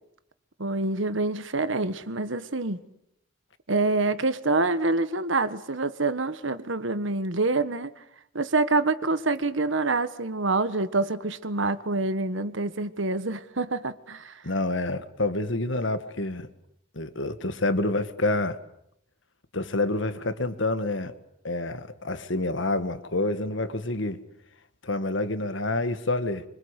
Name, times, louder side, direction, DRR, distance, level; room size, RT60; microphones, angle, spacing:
voice 1, 0.6-2.8 3.7-7.9 8.3-14.3, right 3 dB, 70° right, 1.5 m, -26 dB
voice 2, 14.4-16.5 16.9-18.6 19.5-21.1 21.4-24.2 24.8-26.4, left 2 dB, 70° left, 1.8 m, -28 dB
25.5 x 25.0 x 8.3 m
head